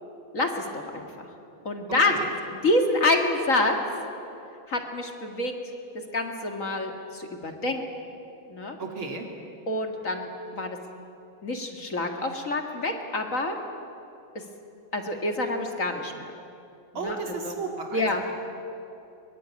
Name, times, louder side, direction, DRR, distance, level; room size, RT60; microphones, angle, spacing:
voice 1, 0.3-1.1 1.7-2.1 2.6-3.8 4.7-5.5 6.1-7.8 8.5-8.8 9.7-10.8 11.4-13.6 14.9-16.3 17.0-17.2 17.4-17.5 17.9-18.2, left 2 dB, 40° left, 4 dB, 2.2 m, -27 dB
voice 2, 1.9-2.3 8.8-9.3 17.0-18.3, right 3 dB, 80° right, 2 dB, 3.7 m, -34 dB
23.0 x 22.0 x 9.6 m, 2.7 s
omnidirectional pair, 2.2 m